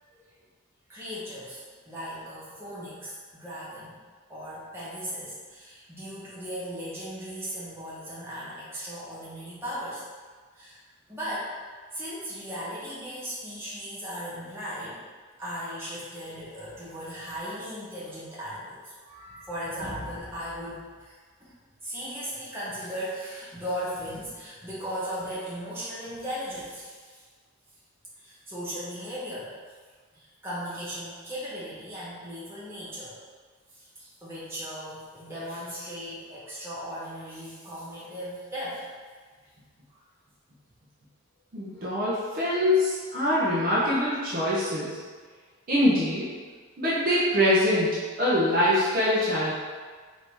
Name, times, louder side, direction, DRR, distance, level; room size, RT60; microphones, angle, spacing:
voice 1, 0.9-4.0 4.3-10.0 10.5-10.8 11.1-11.5 11.9-15.0 15.4-21.1 21.4-21.6 21.8-27.2 28.2-29.5 30.1-33.1 33.7-38.8 39.9-40.0, equal, 10° right, -9 dB, 1.0 m, -37 dB
voice 2, 41.5-45.0 45.7-46.3 46.8-49.5, left 1 dB, 40° right, -8 dB, 0.8 m, -24 dB
3.4 x 2.8 x 4.5 m, 1.5 s
head